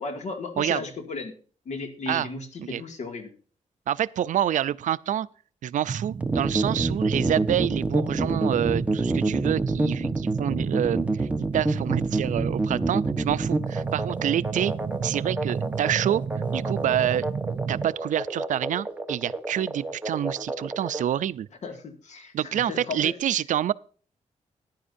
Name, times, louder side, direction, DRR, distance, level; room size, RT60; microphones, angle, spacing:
voice 1, 0.0-1.3 1.7-3.3 21.6-23.1, left 3 dB, 65° left, 2.2 m, -35 dB
voice 2, 3.9-5.3 5.6-11.3 11.5-14.7 15.0-16.2 16.5-17.3 17.7-21.5 22.3-23.7, right 11 dB, 85° right, 0.5 m, -27 dB
sound 1, 5.9-17.9, right 6 dB, 40° right, 0.6 m, -31 dB
sound 2, 6.2-21.0, right 2 dB, 10° right, 1.2 m, -28 dB
15.0 x 10.5 x 2.6 m
wide cardioid pair, 150°, 13 cm